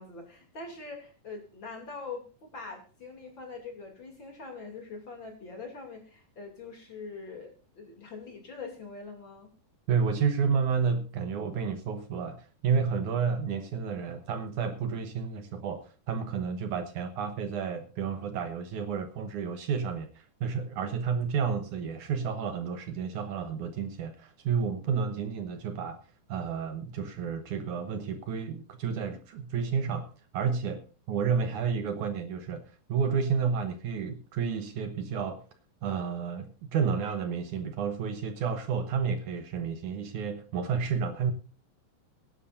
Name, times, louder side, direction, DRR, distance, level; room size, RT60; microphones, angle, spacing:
voice 1, 0.0-9.5, left 4 dB, 35° left, 3.2 m, -43 dB
voice 2, 9.9-26.0 26.3-35.4 35.8-41.3, right 6 dB, 70° right, 2.2 m, -31 dB
22.5 x 11.5 x 2.6 m
omnidirectional pair, 4.1 m